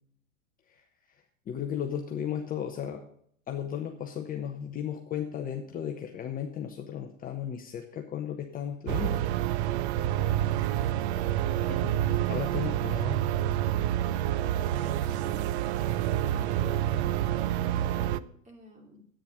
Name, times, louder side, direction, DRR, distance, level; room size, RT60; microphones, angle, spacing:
voice 1, 1.5-3.0 3.5-9.2 11.7-13.2, left 9 dB, 20° left, 3 dB, 1.0 m, -35 dB
sound 1, 8.9-18.2, right 12 dB, 55° right, 0.6 m, -28 dB
voice 2, 10.6-11.6 14.7-15.6 16.2-19.0, right 1 dB, 20° right, 3 dB, 2.6 m, -49 dB
10.0 x 8.9 x 4.9 m, 0.66 s
hypercardioid pair, 125°, 40 cm